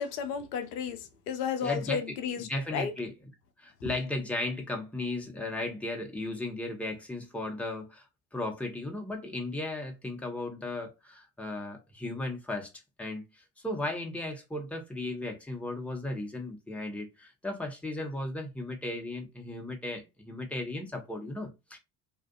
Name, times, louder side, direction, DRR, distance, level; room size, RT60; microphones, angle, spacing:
voice 1, 0.0-2.9, left 7 dB, 85° left, 0.6 m, -33 dB
voice 2, 1.6-3.1 3.6-8.1 8.3-12.7 13.0-21.8, left 2 dB, 5° left, 0.8 m, -36 dB
2.6 x 2.4 x 2.2 m
hypercardioid pair, 55°, 46 cm